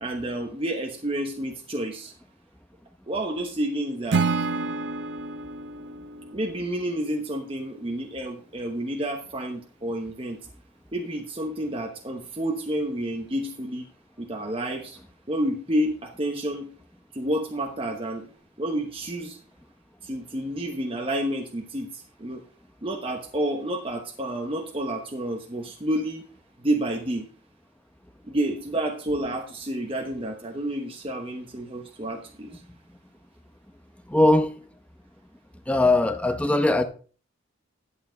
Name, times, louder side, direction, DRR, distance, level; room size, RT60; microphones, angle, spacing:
voice 1, 0.0-2.1 3.1-4.3 6.3-10.4 10.9-13.8 14.2-15.0 15.3-16.7 17.1-18.3 18.6-19.4 20.0-22.4 22.8-26.2 26.6-27.3 28.3-32.5, right 1 dB, 25° right, 1.0 m, -29 dB
Acoustic guitar / Strum, 4.1-7.3, right 4 dB, 60° right, 0.6 m, -29 dB
voice 2, 34.1-34.5 35.7-36.8, left 2 dB, 5° left, 0.8 m, -20 dB
11.5 x 8.4 x 3.9 m
head